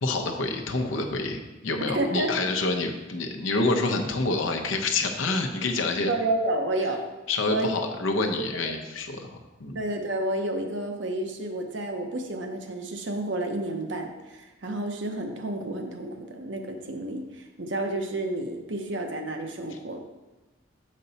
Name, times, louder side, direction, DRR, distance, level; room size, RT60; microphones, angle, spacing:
voice 1, 0.0-6.1 7.3-9.8, left 3 dB, 80° left, 3 dB, 0.8 m, -27 dB
voice 2, 1.9-2.3 6.1-7.0 7.5-7.8 9.7-20.0, right 1 dB, 65° right, 4 dB, 0.8 m, -30 dB
6.7 x 5.3 x 4.1 m, 1.1 s
head